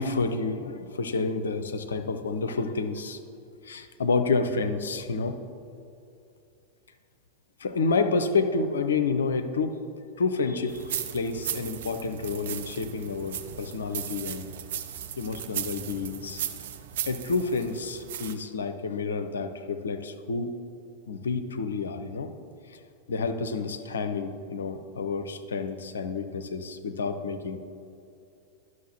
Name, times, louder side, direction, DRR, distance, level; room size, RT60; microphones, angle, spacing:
voice 1, 0.0-3.2 3.6-5.4 7.6-9.8 10.2-14.5 15.2-16.4 17.0-20.5 21.1-22.3 22.7-22.8 23.1-27.6, left 4 dB, 70° left, 9 dB, 0.5 m, -29 dB
sound 1, 10.7-18.3, right 10 dB, 55° right, 0.4 m, -36 dB
11.0 x 6.3 x 2.9 m, 2.6 s
figure-of-eight pair, 90°, 0 cm